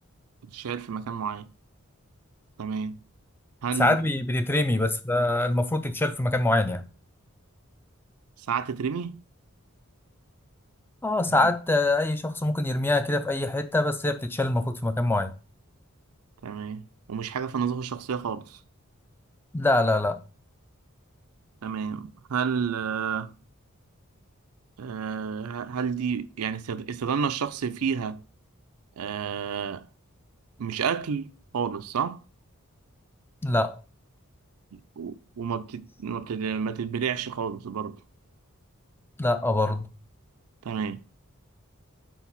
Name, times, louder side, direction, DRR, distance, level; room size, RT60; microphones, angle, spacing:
voice 1, 0.5-1.5 2.6-3.0 3.6-4.0 8.5-9.2 16.4-16.8 17.1-18.6 21.6-23.3 24.8-28.2 29.0-29.9 30.6-32.2 34.7-38.0 40.6-41.0, right 6 dB, 85° right, 0.5 m, -30 dB
voice 2, 3.8-6.8 11.0-15.3 19.5-20.2 33.4-33.8 39.2-39.9, left 2 dB, 10° left, 0.3 m, -24 dB
4.6 x 3.9 x 5.6 m
head